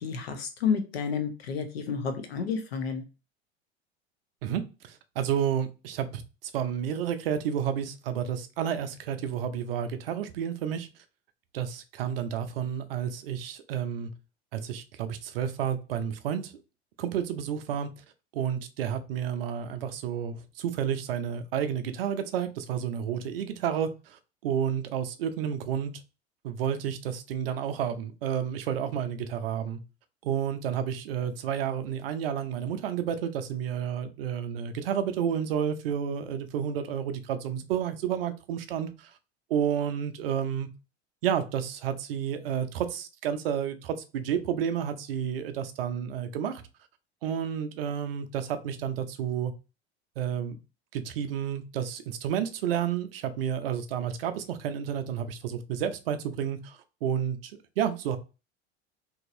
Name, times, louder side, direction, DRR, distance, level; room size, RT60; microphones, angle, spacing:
voice 1, 0.0-3.0, left 6 dB, 65° left, 7 dB, 0.8 m, -30 dB
voice 2, 4.4-6.2 6.5-10.9 11.5-14.1 14.5-16.5 17.0-17.9 18.3-25.9 26.4-29.8 30.2-39.1 39.5-40.7 41.2-46.6 47.2-49.5 50.2-50.6 50.9-58.2, right 8 dB, 60° right, 9 dB, 0.6 m, -31 dB
2.9 x 2.7 x 2.6 m, 0.30 s
figure-of-eight pair, 75°, 33 cm